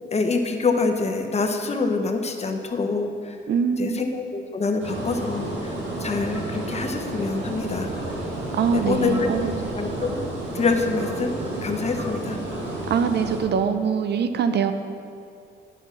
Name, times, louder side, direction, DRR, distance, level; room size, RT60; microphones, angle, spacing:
voice 1, 0.0-3.4 3.8-7.9 8.7-9.5 9.7-10.2 10.5-12.4, left 4 dB, 35° left, 5 dB, 0.9 m, -26 dB
voice 2, 3.5-4.0 8.5-9.7 12.9-14.7, right 6 dB, 60° right, 9 dB, 0.6 m, -23 dB
sound 1, 4.8-13.4, right 1 dB, 75° right, 2.3 m, -31 dB
9.5 x 5.9 x 5.9 m, 2.5 s
cardioid pair, 90°, 20 cm